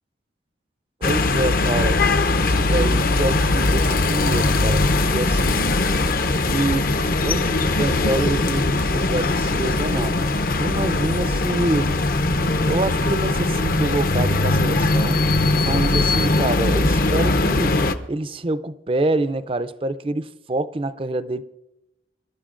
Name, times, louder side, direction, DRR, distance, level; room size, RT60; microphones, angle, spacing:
sound 1, 1.0-17.9, left 2 dB, 50° left, 0.6 m, -20 dB
voice 1, 1.0-2.0 2.3-5.6 6.4-10.2 10.6-11.9 12.7-15.2 15.6-17.8 18.1-21.4, right 2 dB, 30° right, 0.5 m, -26 dB
26.5 x 12.5 x 2.5 m
head